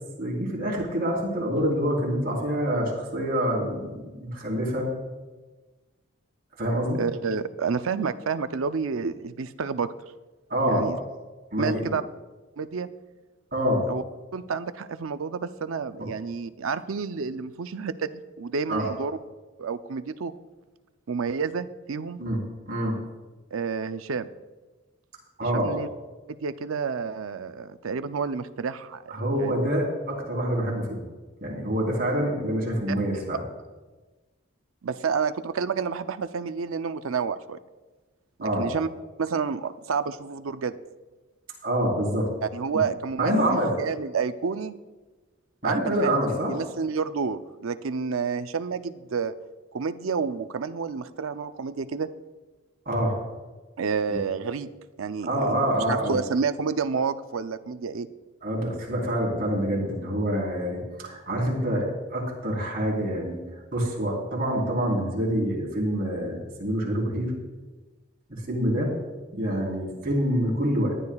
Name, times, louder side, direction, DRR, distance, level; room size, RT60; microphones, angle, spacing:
voice 1, 0.2-4.9 6.6-7.0 10.5-10.9 11.5-11.9 13.5-13.9 18.7-18.9 22.2-22.9 25.4-25.7 29.1-31.0 31.4-33.4 38.4-38.7 41.6-42.3 42.7-42.8 43.2-43.7 45.6-46.5 52.9-53.2 54.1-54.2 55.3-56.2 58.4-63.4 63.7-67.3 68.3-68.9 69.3-71.0, equal, 45° right, -3 dB, 3.8 m, -26 dB
voice 2, 7.0-9.9 10.7-11.0 11.6-12.0 12.6-12.9 13.9-14.0 14.3-19.2 19.6-20.3 21.1-22.2 23.5-24.3 25.5-25.9 26.3-29.5 32.9-33.0 34.8-37.6 38.4-38.9 39.2-40.8 42.4-44.7 45.6-46.2 46.5-49.3 49.7-52.1 53.8-54.7 55.0-58.1, right 5 dB, 80° right, 11 dB, 0.5 m, -29 dB
20.0 x 11.5 x 2.4 m, 1.2 s
head